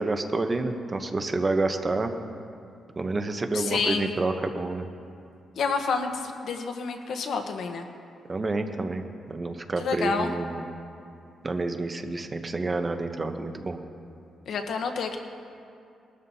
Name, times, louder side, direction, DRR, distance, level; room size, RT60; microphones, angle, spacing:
voice 1, 0.0-2.1 3.0-4.9 8.3-10.6 11.4-13.8, right 3 dB, 25° right, 6 dB, 0.8 m, -29 dB
voice 2, 3.5-4.1 5.6-7.9 9.8-10.3 14.5-15.2, left 5 dB, 70° left, 5 dB, 1.0 m, -29 dB
20.0 x 13.0 x 2.8 m, 2.5 s
cardioid pair, 130°, 0 cm